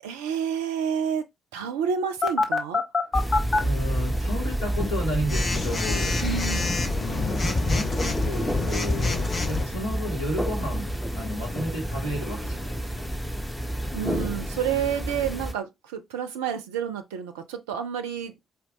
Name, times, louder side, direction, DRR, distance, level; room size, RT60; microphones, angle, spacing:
voice 1, 0.0-2.8 6.2-6.8 13.9-18.3, right 8 dB, 75° right, 0.4 m, -29 dB
Telephone, 2.2-3.6 5.3-9.6, left 3 dB, 35° left, 0.8 m, -25 dB
sound 1, 3.1-15.5, right 1 dB, 5° left, 0.8 m, -30 dB
voice 2, 3.6-6.2 7.0-13.1, equal, 85° left, 1.2 m, -32 dB
4.4 x 2.2 x 3.9 m
figure-of-eight pair, 40°, 0 cm